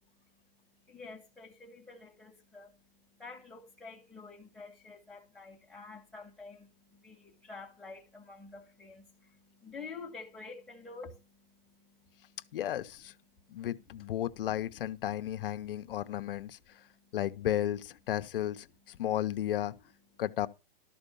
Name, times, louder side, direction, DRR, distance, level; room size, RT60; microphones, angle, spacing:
voice 1, 0.9-12.6 13.3-13.7 16.7-17.2, left 4 dB, ahead, 1.6 m, -49 dB
voice 2, 12.5-13.1 13.5-16.6 17.1-19.7 20.2-20.5, left 12 dB, 65° left, 0.7 m, -33 dB
12.5 x 4.5 x 6.9 m
hypercardioid pair, 165°, 30 cm